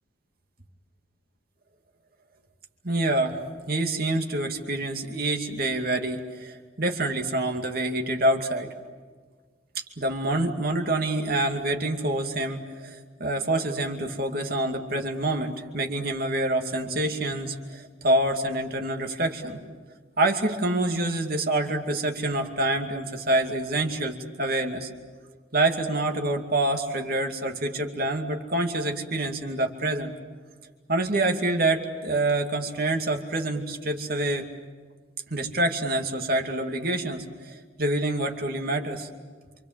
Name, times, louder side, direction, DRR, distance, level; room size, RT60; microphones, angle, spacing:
voice 1, 2.8-3.4 3.7-8.7 9.7-19.6 20.2-24.9 25.5-30.1 30.9-34.5 35.3-39.1, right 2 dB, 50° right, 3 dB, 2.5 m, -26 dB
28.0 x 26.0 x 7.5 m, 1.5 s
head